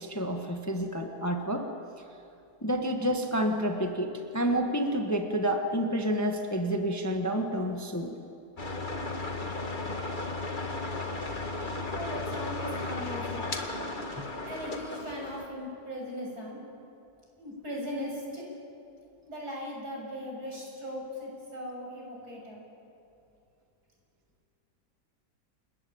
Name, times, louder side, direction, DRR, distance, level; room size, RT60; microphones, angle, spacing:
voice 1, 0.0-1.7 2.6-8.1 14.2-14.3, equal, 10° left, 3 dB, 1.4 m, -29 dB
sound 1, 8.6-15.4, left 2 dB, 30° left, 1.9 m, -35 dB
voice 2, 11.9-13.6 14.4-16.6 17.4-18.4 19.3-22.6, equal, 65° right, -2 dB, 7.8 m, -38 dB
29.5 x 20.0 x 8.8 m, 2.6 s
omnidirectional pair, 1.8 m